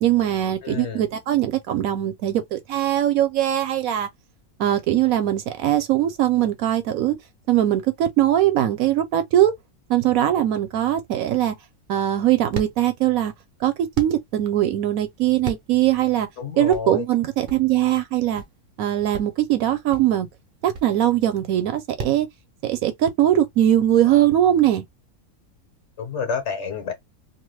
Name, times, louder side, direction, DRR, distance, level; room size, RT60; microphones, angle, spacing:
voice 1, 0.0-4.1 4.6-7.2 7.5-9.5 9.9-11.5 11.9-13.3 13.6-16.3 16.6-18.4 18.8-20.3 20.6-22.3 22.6-24.8, right 12 dB, 70° right, 1.0 m, -21 dB
voice 2, 0.6-1.1 16.4-17.0 26.0-26.9, left 5 dB, 55° left, 1.0 m, -29 dB
sound 1, 11.5-22.2, right 4 dB, 50° right, 0.7 m, -38 dB
2.7 x 2.2 x 3.1 m
omnidirectional pair, 1.6 m